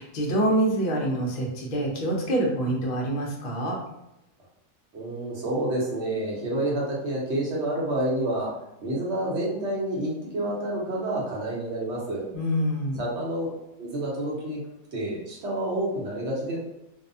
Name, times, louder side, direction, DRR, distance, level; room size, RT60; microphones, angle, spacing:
voice 1, 0.0-3.8 12.3-13.0, right 1 dB, 55° left, -2 dB, 0.6 m, -26 dB
voice 2, 4.9-8.5 8.8-12.2 13.0-13.5 13.8-14.6 14.9-16.6, right 1 dB, 55° right, -4 dB, 1.0 m, -28 dB
2.7 x 2.1 x 2.6 m, 0.88 s
omnidirectional pair, 1.5 m